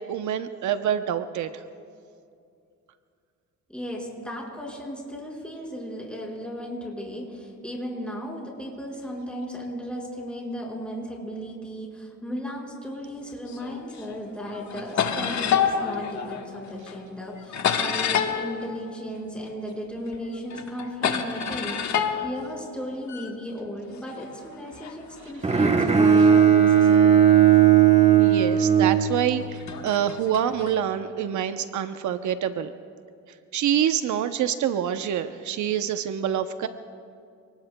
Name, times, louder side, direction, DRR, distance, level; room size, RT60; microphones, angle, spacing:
voice 1, 0.0-1.5 28.2-32.7 33.5-36.7, right 9 dB, 75° right, 9 dB, 0.7 m, -26 dB
voice 2, 3.7-27.2, equal, 5° left, -2 dB, 4.8 m, -35 dB
sound 1, 13.5-14.2 14.5-19.7 20.1-23.3 24.0-27.6 28.3-28.4 29.4-30.8, left 7 dB, 65° left, 1.4 m, -30 dB
Bowed string instrument, 25.4-29.7, right 8 dB, 20° right, 1.0 m, -17 dB
28.0 x 19.5 x 2.2 m, 2.4 s
cardioid pair, 90°, 30 cm